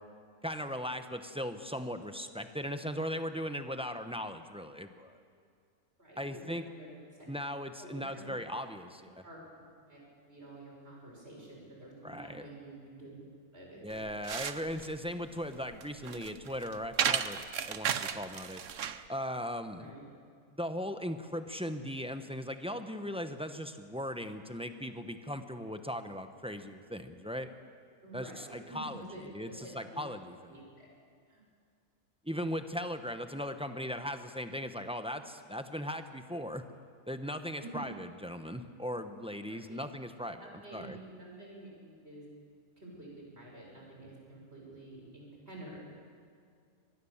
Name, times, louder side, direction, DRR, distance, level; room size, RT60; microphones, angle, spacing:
voice 1, 0.4-5.2 6.2-6.6 7.3-9.1 12.0-12.4 13.8-18.6 19.1-19.9 20.6-27.5 28.1-30.6 32.2-36.6 37.1-40.4 40.7-41.0, equal, 5° right, 7 dB, 0.9 m, -38 dB
voice 2, 6.0-6.9 7.2-7.3 7.8-8.4 9.0-9.4 9.9-10.0 10.3-13.2 13.5-14.1 19.7-20.0 28.0-30.0 30.5-30.9 31.3-31.4 37.6-37.8 39.5-39.8 40.4-42.3 42.8-45.8, right 2 dB, 45° right, -2 dB, 6.7 m, -49 dB
sound 1, 13.9-19.1, right 8 dB, 60° right, 1.2 m, -35 dB
24.5 x 20.0 x 7.3 m, 2.2 s
omnidirectional pair, 1.5 m